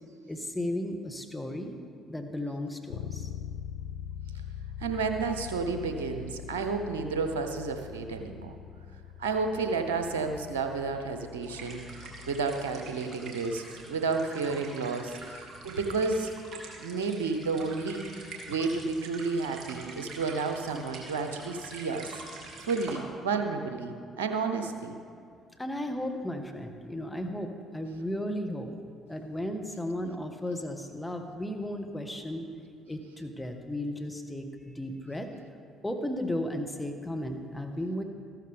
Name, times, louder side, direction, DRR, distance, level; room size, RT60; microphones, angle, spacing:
voice 1, 0.3-1.8 2.1-3.3 25.6-32.5 32.9-35.3 35.8-38.0, left 1 dB, 10° left, 4 dB, 1.4 m, -35 dB
Bass guitar, 2.9-12.7, left 9 dB, 80° left, 0.5 m, -43 dB
voice 2, 4.8-8.6 9.2-16.3 16.8-18.0 18.5-22.2 22.6-24.9, right 4 dB, 85° right, 6 dB, 0.8 m, -31 dB
sound 1, 11.4-22.9, right 3 dB, 55° right, 2.7 m, -45 dB
14.0 x 12.5 x 3.5 m, 2.4 s
hypercardioid pair, 50°, 0 cm